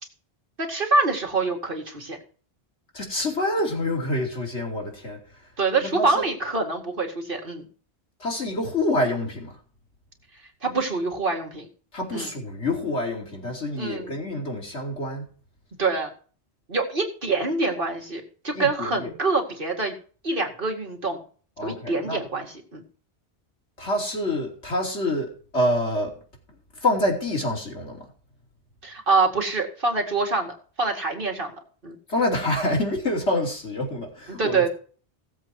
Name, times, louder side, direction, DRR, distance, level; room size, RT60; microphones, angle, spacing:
voice 1, 0.6-2.2 5.6-7.7 10.6-11.7 12.1-12.3 13.8-14.2 15.8-16.1 16.7-19.9 20.2-21.2 21.6-22.8 28.8-31.6 31.8-32.0 34.3-34.7, right 3 dB, 55° right, 2.3 m, -25 dB
voice 2, 2.9-5.2 5.8-6.3 8.2-9.5 11.9-15.2 18.5-19.1 21.6-22.2 23.8-26.1 26.8-28.0 32.1-34.7, left 1 dB, 85° left, 3.6 m, -27 dB
16.0 x 7.8 x 4.7 m
omnidirectional pair, 1.1 m